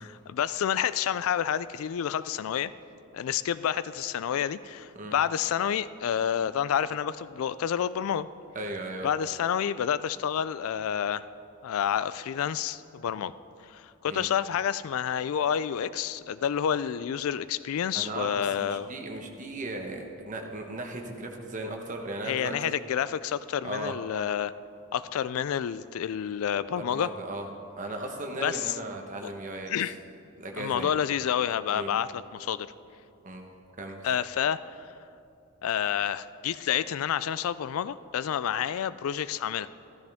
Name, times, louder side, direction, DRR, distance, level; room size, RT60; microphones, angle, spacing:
voice 1, 0.0-2.7 3.1-8.3 9.0-11.3 11.6-13.3 13.7-18.9 22.2-24.5 24.9-27.1 28.4-28.8 29.2-29.3 29.7-29.9 30.6-32.7 34.0-34.9 35.6-39.7, left 9 dB, 70° left, 16 dB, 0.3 m, -29 dB
voice 2, 8.5-9.1 14.1-14.3 17.9-22.7 23.6-24.0 26.8-27.5 27.7-29.9 30.4-31.0 31.7-31.9 33.2-33.5 33.8-34.1, right 2 dB, 35° right, 2 dB, 1.1 m, -37 dB
14.0 x 13.0 x 3.5 m, 2.5 s
head